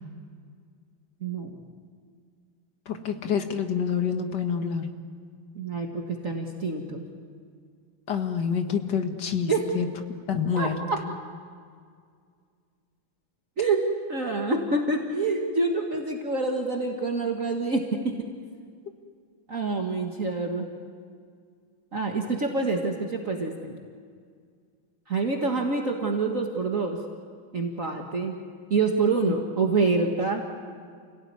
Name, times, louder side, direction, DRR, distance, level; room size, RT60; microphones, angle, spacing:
voice 1, 1.2-1.6 5.6-7.0 9.5-9.6 10.6-11.0 13.6-18.2 19.5-20.7 21.9-23.8 25.1-27.0 27.5-28.4 28.7-30.4, right 3 dB, 40° right, 1 dB, 2.0 m, -26 dB
voice 2, 2.9-4.9 8.1-9.9 10.3-11.1, left 6 dB, 55° left, 6 dB, 2.2 m, -27 dB
29.0 x 17.5 x 9.6 m, 2.1 s
omnidirectional pair, 2.2 m